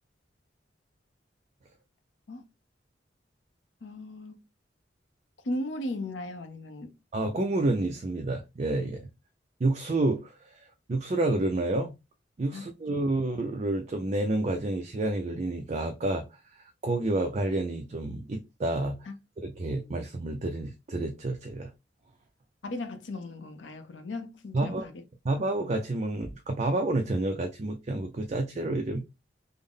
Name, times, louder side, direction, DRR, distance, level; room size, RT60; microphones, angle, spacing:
voice 1, 3.8-4.4 5.4-6.9 12.5-12.6 19.1-19.2 19.8-19.9 22.6-25.0, left 1 dB, 85° left, 0.7 m, -37 dB
voice 2, 7.1-9.1 9.6-10.3 10.9-11.9 12.4-16.3 16.8-19.0 19.4-21.7 24.5-24.9 25.2-29.0, right 2 dB, 40° right, 0.4 m, -29 dB
3.6 x 2.0 x 3.5 m
head